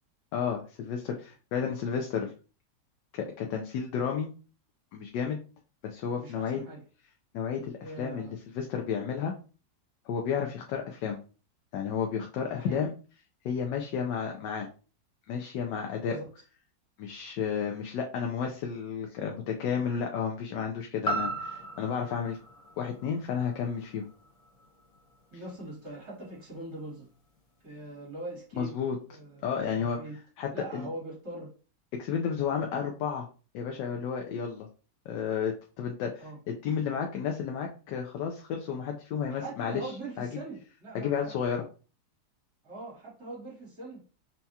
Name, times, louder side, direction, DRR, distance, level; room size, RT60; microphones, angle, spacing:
voice 1, 0.3-2.3 3.1-4.3 4.9-5.4 5.8-6.6 7.3-9.3 10.1-11.2 11.7-12.9 13.4-14.7 15.3-16.2 17.0-22.4 22.8-24.0 28.6-29.0 29.4-30.0 30.4-30.9 32.0-33.3 33.5-34.7 35.1-39.9 40.2-40.3 40.9-41.6, left 7 dB, 85° left, 2 dB, 1.3 m, -32 dB
voice 2, 6.1-6.8 7.8-8.3 12.5-12.9 16.0-16.3 25.3-27.1 27.6-28.7 29.1-30.2 30.5-31.5 36.2-36.4 39.3-41.3 42.6-44.0, right 2 dB, 60° right, -6 dB, 2.9 m, -42 dB
sound 1, 21.0-25.1 25.6-25.7, right 1 dB, 55° left, 0.4 m, -37 dB
5.9 x 2.2 x 2.7 m, 0.36 s
omnidirectional pair, 1.9 m